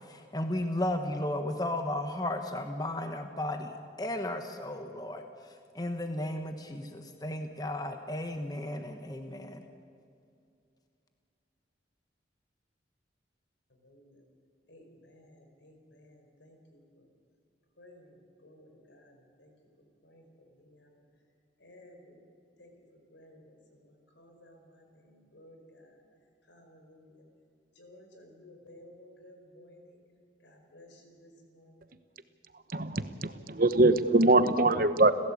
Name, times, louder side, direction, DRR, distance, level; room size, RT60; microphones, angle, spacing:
voice 1, 0.1-3.7 4.0-9.6, left 1 dB, 20° left, 6 dB, 1.2 m, -34 dB
voice 2, 13.7-14.2 14.7-17.1 17.8-19.5 20.0-21.0 21.6-22.2 22.6-26.0 26.5-27.2 27.7-30.0 30.4-31.8, left 1 dB, 75° left, 3 dB, 4.9 m, -56 dB
voice 3, 32.7-35.1, right 2 dB, 50° right, 11 dB, 1.0 m, -23 dB
29.5 x 15.5 x 8.6 m, 2.5 s
head